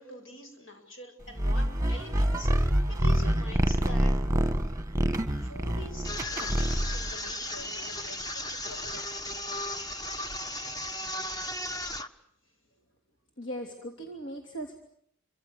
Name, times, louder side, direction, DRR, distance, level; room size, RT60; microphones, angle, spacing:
voice 1, 0.0-2.5 2.9-4.2 5.4-9.3, left 2 dB, 85° left, 5 dB, 7.3 m, -45 dB
sound 1, 1.4-7.1, right 1 dB, 15° right, 1.6 m, -26 dB
sound 2, 6.0-12.1, left 1 dB, 20° left, 1.4 m, -35 dB
voice 2, 13.4-14.8, right 1 dB, 65° left, 3 dB, 3.2 m, -38 dB
29.0 x 25.5 x 6.7 m, 0.68 s
head